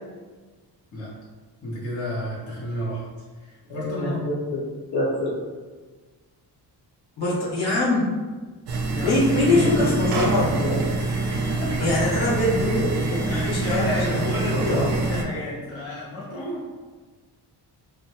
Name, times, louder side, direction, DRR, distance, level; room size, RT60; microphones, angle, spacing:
voice 1, 1.6-3.0 3.3-4.3 8.9-9.9 11.0-11.9 13.2-16.7, left 1 dB, 35° left, -7 dB, 0.6 m, -31 dB
voice 2, 3.7-4.6 4.9-5.3 7.2-8.1 9.0-10.8 11.8-14.1 14.5-14.9, left 1 dB, 65° left, -6 dB, 1.1 m, -24 dB
sound 1, 8.7-15.2, right 3 dB, 70° right, 0.5 m, -25 dB
2.7 x 2.1 x 2.8 m, 1.4 s
wide cardioid pair, 150°, 41 cm